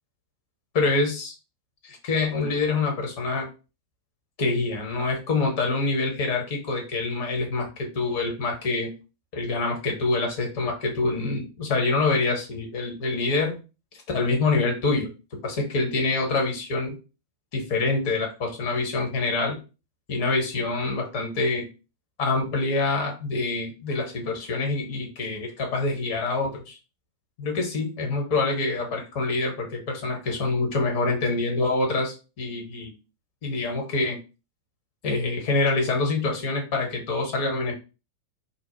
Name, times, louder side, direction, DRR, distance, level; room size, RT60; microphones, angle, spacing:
voice 1, 0.7-1.3 1.8-3.5 4.4-8.9 9.3-13.6 14.1-15.1 15.4-17.0 17.5-19.6 20.1-21.7 22.2-26.8 27.4-32.9 33.4-34.2 35.0-37.7, left 3 dB, 45° left, 1 dB, 1.0 m, -26 dB
2.7 x 2.1 x 2.8 m, 0.32 s
figure-of-eight pair, 90°, 0 cm